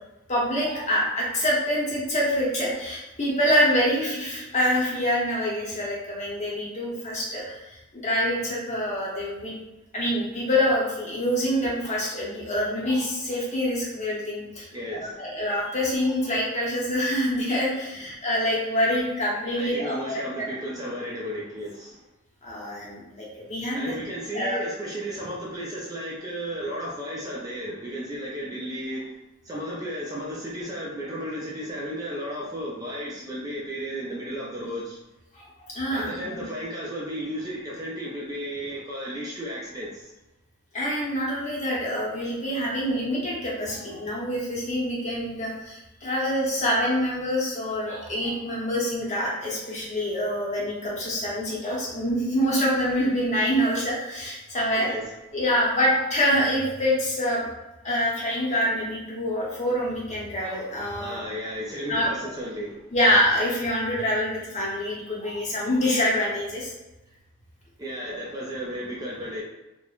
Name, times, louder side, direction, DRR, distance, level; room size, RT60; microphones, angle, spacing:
voice 1, 0.3-9.5 9.9-20.2 22.4-23.9 24.3-24.6 35.3-36.4 40.7-54.9 55.3-57.5 57.8-61.2 61.9-62.1 62.9-66.7, equal, 35° left, -5 dB, 0.7 m, -26 dB
voice 2, 14.7-15.2 19.5-22.0 23.7-29.1 29.4-35.0 35.9-40.1 54.8-55.0 61.0-62.8 67.8-69.4, equal, 15° right, -4 dB, 0.3 m, -34 dB
3.0 x 2.0 x 2.3 m, 1.0 s
head